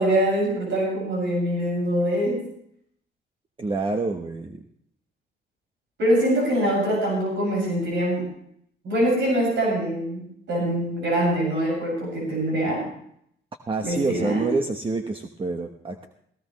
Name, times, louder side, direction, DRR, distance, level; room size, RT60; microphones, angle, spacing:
voice 1, 0.0-2.4 6.0-8.3 8.8-10.2 10.5-12.9 13.8-14.5, right 1 dB, 70° right, -2 dB, 6.8 m, -23 dB
voice 2, 3.6-4.6 13.7-16.1, right 3 dB, 25° right, 5 dB, 1.1 m, -27 dB
17.5 x 16.0 x 3.2 m, 0.69 s
cardioid pair, 90°, 20 cm